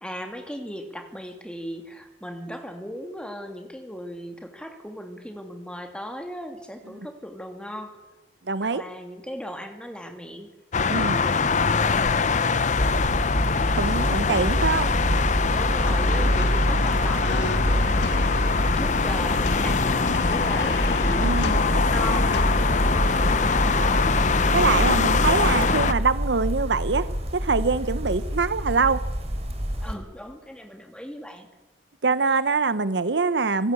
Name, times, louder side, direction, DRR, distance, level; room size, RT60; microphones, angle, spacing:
voice 1, 0.0-7.9 8.6-10.5 10.9-12.6 13.9-14.7 15.5-24.1 29.8-31.5, equal, 5° left, 5 dB, 2.9 m, -37 dB
voice 2, 8.5-8.8 10.9-11.2 13.7-14.9 21.2-21.6 24.5-27.1 27.3-29.0 32.0-33.7, right 4 dB, 75° right, 15 dB, 0.9 m, -24 dB
sound 1, 10.7-25.9, left 4 dB, 45° left, 0.8 m, -23 dB
sound 2, 12.8-29.9, equal, 35° right, 3.6 m, -26 dB
sound 3, 15.5-25.9, left 3 dB, 80° left, 1.8 m, -34 dB
25.5 x 16.5 x 8.5 m, 1.1 s
head